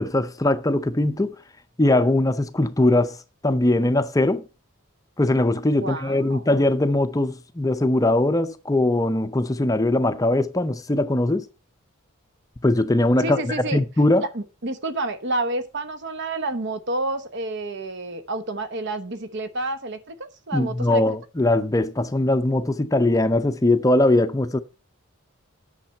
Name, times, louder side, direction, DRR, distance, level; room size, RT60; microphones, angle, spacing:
voice 1, 0.0-1.3 1.8-3.2 3.4-4.4 5.2-11.5 12.6-14.2 20.5-24.6, left 1 dB, 15° left, 0.5 m, -21 dB
voice 2, 5.8-6.5 13.2-13.8 14.2-21.2, right 2 dB, 55° right, 1.1 m, -29 dB
8.9 x 6.6 x 5.5 m
head